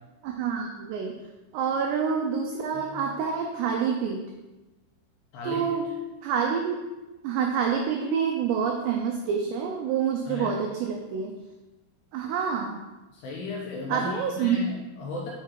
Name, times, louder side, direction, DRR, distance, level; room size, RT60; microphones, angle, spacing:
voice 1, 0.2-1.2 1.5-4.2 5.4-5.9 6.2-6.8 7.2-11.4 12.1-12.8 13.9-14.6, right 7 dB, 90° right, 2 dB, 2.4 m, -27 dB
voice 2, 2.7-3.0 5.3-5.8 10.3-10.5 13.1-15.3, left 4 dB, 80° left, -2 dB, 2.4 m, -35 dB
7.2 x 4.8 x 4.5 m, 1.1 s
omnidirectional pair, 5.6 m